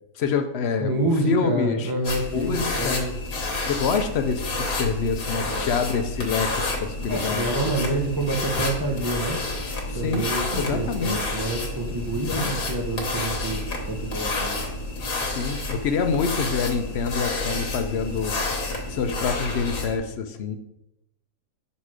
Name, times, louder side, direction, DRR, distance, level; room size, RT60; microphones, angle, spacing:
voice 1, 0.2-0.9 1.2-1.9 2.3-3.1 3.6-7.7 9.9-11.2 12.1-12.5 15.3-18.3 18.9-20.6, left 5 dB, 60° left, 7 dB, 0.7 m, -26 dB
voice 2, 0.8-3.1 5.4-5.7 7.1-9.4 9.9-14.6, right 2 dB, 20° right, 2 dB, 0.6 m, -28 dB
sound 1, 2.0-20.0, left 2 dB, 80° left, 1.6 m, -29 dB
6.1 x 4.2 x 4.7 m, 0.86 s
omnidirectional pair, 1.5 m